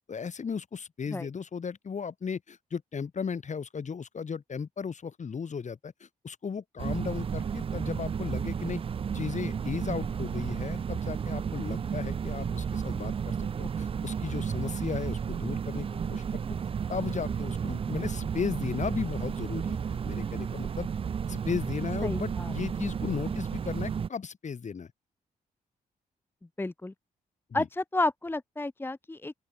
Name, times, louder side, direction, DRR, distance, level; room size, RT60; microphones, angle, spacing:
voice 1, 0.1-8.8 9.1-16.4 16.9-20.9 21.3-24.9 27.5-27.7, left 6 dB, 50° left, 2.5 m, -35 dB
sound 1, 6.8-24.1, right 7 dB, 35° right, 0.4 m, -32 dB
voice 2, 22.0-22.5 26.6-26.9 27.5-29.3, left 2 dB, 15° left, 0.7 m, -31 dB
open air
cardioid pair, 70°, 16 cm